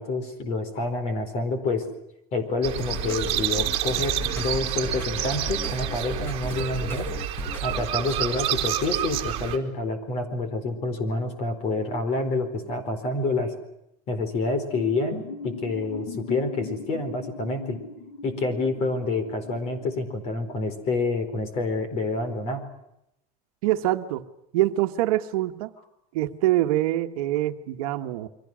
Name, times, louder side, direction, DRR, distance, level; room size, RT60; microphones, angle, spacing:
voice 1, 0.0-1.8 2.3-7.1 7.6-13.5 14.1-17.8 18.2-22.6, left 3 dB, 35° left, 9 dB, 4.5 m, -28 dB
sound 1, 2.6-9.6, right 12 dB, 30° right, 3.0 m, -29 dB
sound 2, 2.8-7.9, left 2 dB, 10° left, 1.5 m, -35 dB
sound 3, 14.7-20.4, left 4 dB, 65° left, 5.7 m, -40 dB
voice 2, 23.6-24.2 24.5-25.7 26.1-28.3, right 15 dB, 65° right, 7 dB, 1.4 m, -24 dB
29.5 x 24.0 x 6.3 m, 0.81 s
supercardioid pair, 175°, 20 cm